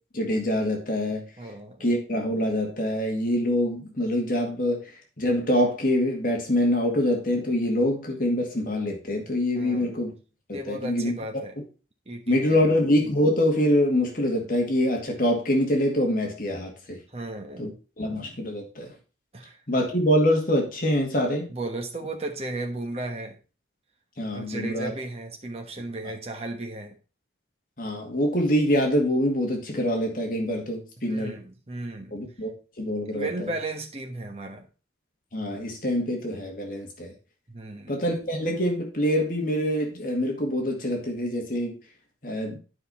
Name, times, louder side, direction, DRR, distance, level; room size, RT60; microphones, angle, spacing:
voice 1, 0.1-1.2 1.8-10.1 10.5-11.1 12.3-17.0 17.6-17.7 18.0-18.9 19.7-21.5 24.2-24.9 27.8-31.3 32.1-32.5 32.8-33.5 35.3-37.1 37.9-41.8 42.2-42.6, left 1 dB, 45° left, 1 dB, 2.1 m, -25 dB
voice 2, 1.4-1.8 9.5-9.9 10.5-11.5 12.1-12.7 17.1-17.7 19.3-19.6 21.5-23.4 24.3-26.9 31.0-32.1 33.1-34.6 37.5-37.9, right 2 dB, 35° right, 3 dB, 1.3 m, -35 dB
9.8 x 5.4 x 4.2 m, 0.34 s
head